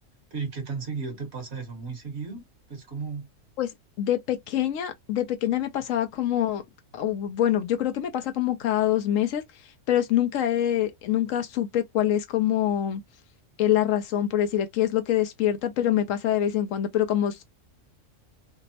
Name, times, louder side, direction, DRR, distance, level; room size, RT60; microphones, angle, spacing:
voice 1, 0.3-3.3, right 5 dB, 55° right, 1.2 m, -35 dB
voice 2, 4.0-6.6 6.9-9.4 9.9-13.0 13.6-17.4, left 11 dB, 80° left, 1.0 m, -25 dB
3.4 x 2.0 x 2.7 m
omnidirectional pair, 1.4 m